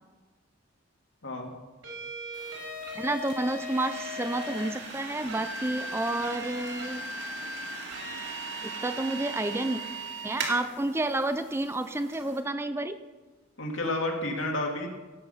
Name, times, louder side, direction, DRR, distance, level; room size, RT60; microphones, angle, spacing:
sound 1, 1.8-4.7 5.3-10.4, equal, 75° right, 4.8 m, -39 dB
sound 2, 2.3-12.4, right 3 dB, 55° right, 2.4 m, -41 dB
voice 1, 3.0-7.1 8.6-9.8 10.2-13.0, right 2 dB, 10° right, 10 dB, 0.4 m, -30 dB
voice 2, 13.6-14.9, left 2 dB, 70° left, 1 dB, 2.4 m, -30 dB
17.5 x 7.5 x 5.6 m, 1.2 s
head